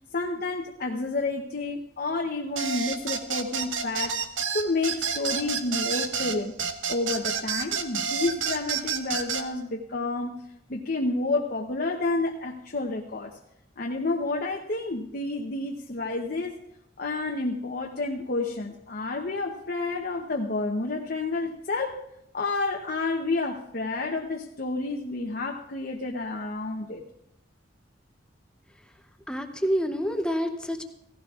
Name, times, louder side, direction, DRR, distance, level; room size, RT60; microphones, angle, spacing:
voice 1, 0.1-4.2 4.5-6.6 6.9-10.4 10.7-13.3 13.8-16.6 17.0-22.0 22.3-27.0, left 3 dB, 50° left, 1 dB, 0.8 m, -30 dB
sound 1, 2.6-9.5, right 6 dB, 90° right, 0.9 m, -29 dB
voice 2, 29.3-30.8, equal, 5° left, 5 dB, 0.7 m, -27 dB
16.5 x 15.0 x 2.4 m, 0.83 s
head